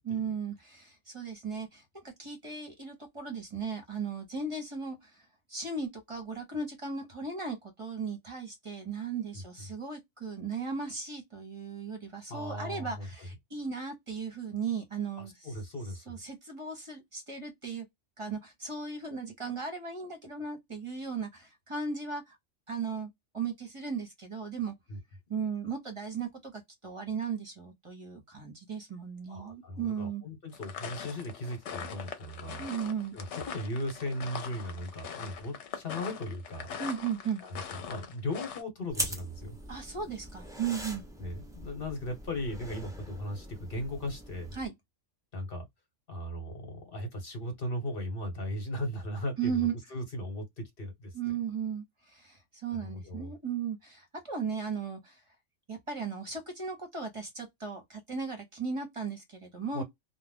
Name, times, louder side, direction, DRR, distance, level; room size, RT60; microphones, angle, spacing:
voice 1, 0.0-15.5 16.1-17.8 18.2-22.4 22.7-24.7 25.3-30.2 32.6-33.2 36.8-37.4 39.7-41.0 44.5-44.7 49.4-49.7 51.1-55.2 55.7-59.8, right 6 dB, 30° right, 0.9 m, -36 dB
voice 2, 12.3-13.1 15.2-16.2 24.9-25.0 29.3-32.6 33.1-36.7 37.4-39.6 41.2-44.6 45.3-45.6 46.1-51.4 52.7-53.3 59.7-59.8, left 1 dB, 50° left, 1.3 m, -37 dB
sound 1, 30.5-38.6, left 7 dB, 75° left, 1.0 m, -42 dB
sound 2, 38.9-44.7, right 1 dB, 5° right, 0.4 m, -41 dB
2.4 x 2.2 x 3.5 m
omnidirectional pair, 1.2 m